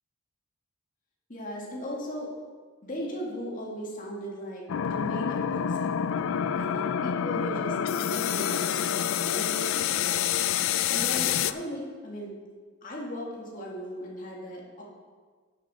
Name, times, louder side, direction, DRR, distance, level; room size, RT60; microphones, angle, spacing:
voice 1, 1.3-2.3 2.8-5.9 6.6-10.1 10.9-12.3 12.8-14.8, equal, 40° left, -3 dB, 2.1 m, -37 dB
sound 1, 4.7-11.5, left 9 dB, 65° left, 0.3 m, -27 dB
10.0 x 8.3 x 4.3 m, 1.5 s
head